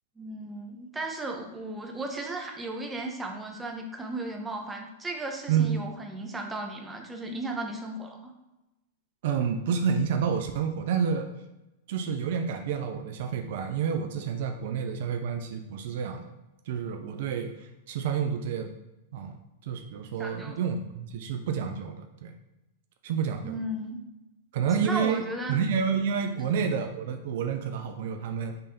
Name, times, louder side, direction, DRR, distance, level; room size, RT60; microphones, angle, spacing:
voice 1, 0.2-8.3 20.2-20.6 23.4-24.0 24.8-25.6, right 2 dB, 10° right, 2 dB, 0.8 m, -35 dB
voice 2, 9.2-11.3 11.9-16.3 16.7-17.5 17.9-18.7 19.1-19.4 19.6-22.3 23.0-23.6 24.5-25.2 25.5-28.5, right 7 dB, 65° right, 6 dB, 0.4 m, -29 dB
5.2 x 3.3 x 2.7 m, 0.99 s
hypercardioid pair, 115°, 0 cm